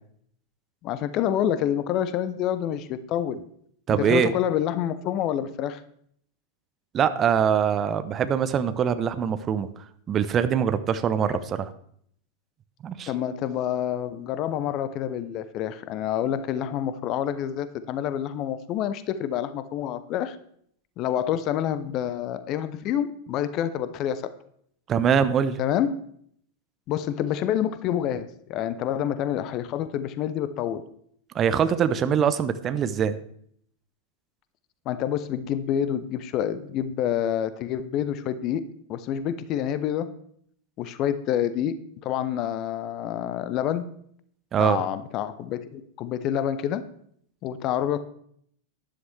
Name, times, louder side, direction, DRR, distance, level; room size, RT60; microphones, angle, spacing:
voice 1, 0.8-3.4 4.0-5.8 11.3-11.4 13.1-20.4 21.0-24.3 25.6-25.9 26.9-30.8 34.9-38.6 38.9-40.1 40.8-41.7 42.0-43.9 44.6-46.8 47.4-48.0, left 10 dB, 35° left, 14 dB, 0.8 m, -27 dB
voice 2, 3.9-4.3 6.9-9.7 10.1-11.7 12.8-13.1 24.9-25.6 31.3-33.2 44.5-44.8, right 8 dB, 25° right, 12 dB, 0.8 m, -23 dB
12.5 x 11.0 x 3.4 m, 0.65 s
figure-of-eight pair, 90°, 0 cm